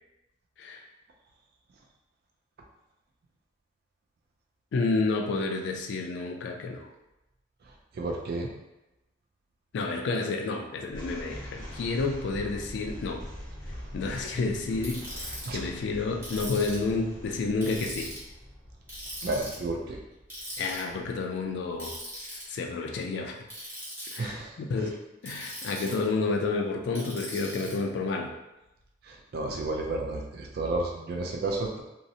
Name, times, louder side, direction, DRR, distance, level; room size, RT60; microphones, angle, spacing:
voice 1, 4.7-6.9 9.7-13.2 13.9-18.1 20.6-22.0 22.3-23.4 24.1-24.4 24.7-24.9 25.2-28.3, left 3 dB, 65° left, 3 dB, 0.3 m, -30 dB
voice 2, 7.9-8.5 15.5-15.6 19.2-20.0 24.2-24.5 29.0-31.8, right 2 dB, 55° right, 1 dB, 0.3 m, -31 dB
sound 1, 10.9-22.2, equal, 85° right, 1.0 m, -44 dB
Ratchet pawl, 14.8-15.5 16.2-16.9 17.6-18.2 18.9-19.6 20.3-20.8 21.8-22.4 23.5-24.2 25.2-26.0 26.9-27.7, equal, 15° right, 0.9 m, -40 dB
2.6 x 2.0 x 2.6 m, 0.96 s
head